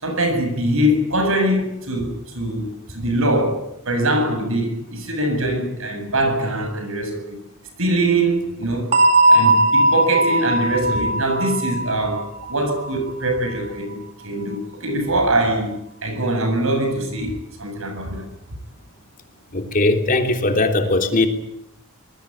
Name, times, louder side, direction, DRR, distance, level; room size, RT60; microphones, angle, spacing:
voice 1, 0.0-7.4 7.8-8.9 9.3-15.7 16.0-18.2, right 1 dB, 65° right, 6 dB, 7.5 m, -22 dB
sound 1, 8.9-13.5, right 1 dB, 30° right, 1.7 m, -18 dB
voice 2, 19.5-21.3, left 2 dB, 40° left, 4 dB, 3.2 m, -19 dB
26.0 x 20.5 x 8.7 m, 0.79 s
head